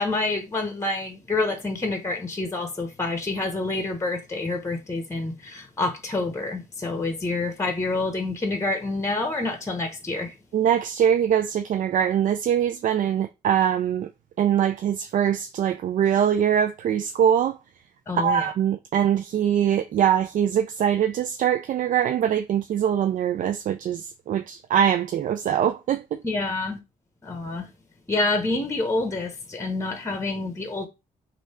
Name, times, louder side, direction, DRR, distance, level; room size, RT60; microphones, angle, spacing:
voice 1, 0.0-10.4 18.1-18.5 26.2-26.8 27.2-27.7 28.1-30.9, left 2 dB, 15° left, 0.9 m, -27 dB
voice 2, 10.5-14.1 14.4-17.6 18.1-26.2, right 9 dB, 55° right, 0.4 m, -23 dB
3.1 x 2.6 x 4.2 m
supercardioid pair, 50°, 16 cm